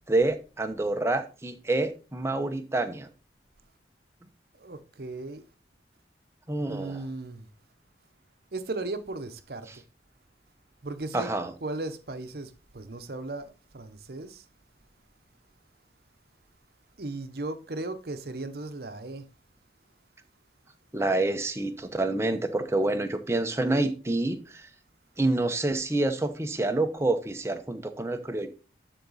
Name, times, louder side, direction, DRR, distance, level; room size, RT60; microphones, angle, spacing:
voice 1, 0.1-3.1 6.5-7.0 11.1-11.5 20.9-24.7 25.2-28.5, right 2 dB, 15° right, 0.7 m, -27 dB
voice 2, 4.5-5.4 6.7-7.5 8.5-9.8 10.8-11.3 11.6-14.4 17.0-19.3, right 2 dB, 55° right, 0.8 m, -36 dB
12.0 x 4.0 x 4.0 m
head